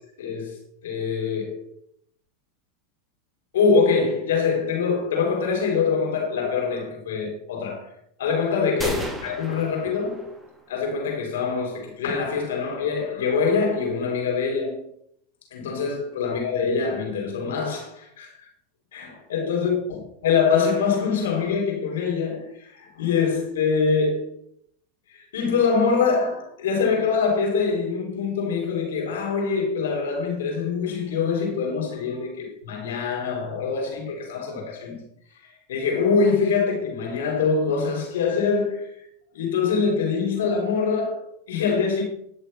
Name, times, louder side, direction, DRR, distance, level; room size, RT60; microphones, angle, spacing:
voice 1, 0.2-1.7 3.5-7.9 8.2-10.4 10.7-14.8 15.5-18.5 18.9-24.3 25.1-35.0 35.4-38.9 39.3-42.0, left 5 dB, 80° left, 4.2 m, -24 dB
sound 1, 8.8-10.7, right 1 dB, 15° right, 3.1 m, -34 dB
11.0 x 6.7 x 5.7 m
hypercardioid pair, 105°, 0 cm